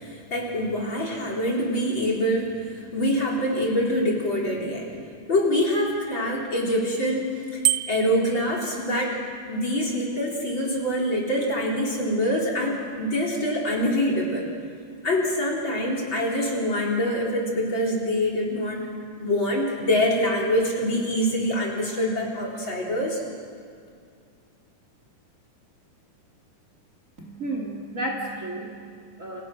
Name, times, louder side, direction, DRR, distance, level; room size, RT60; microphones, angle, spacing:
voice 1, 0.0-4.9 5.3-7.4 7.9-9.2 9.5-14.5 15.0-18.8 19.2-23.2, equal, 35° left, -2 dB, 4.7 m, -25 dB
Bicycle bell, 7.6-8.3, right 15 dB, 65° right, 1.5 m, -24 dB
voice 2, 27.2-29.4, right 1 dB, 25° right, 1 dB, 2.7 m, -33 dB
29.5 x 27.5 x 6.2 m, 2.3 s
omnidirectional pair, 3.7 m